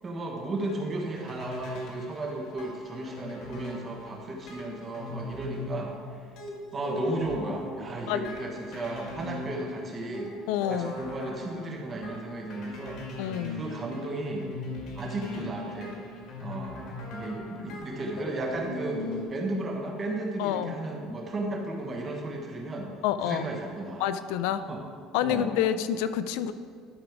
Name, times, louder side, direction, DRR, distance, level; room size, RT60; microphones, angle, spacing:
voice 1, 0.0-6.0 6.7-10.3 10.7-13.0 13.5-14.5 14.9-16.0 16.4-22.9 23.2-24.0 24.5-24.8 25.2-25.6, right 2 dB, 20° right, 0 dB, 1.2 m, -34 dB
sound 1, 0.6-19.2, left 1 dB, 55° left, 2.0 m, -40 dB
voice 2, 10.5-10.9 13.2-13.6 20.4-20.7 23.0-23.4 24.0-24.6 25.1-26.5, left 10 dB, 85° left, 12 dB, 0.4 m, -28 dB
11.5 x 5.2 x 4.7 m, 2.1 s
cardioid pair, 170°, 0 cm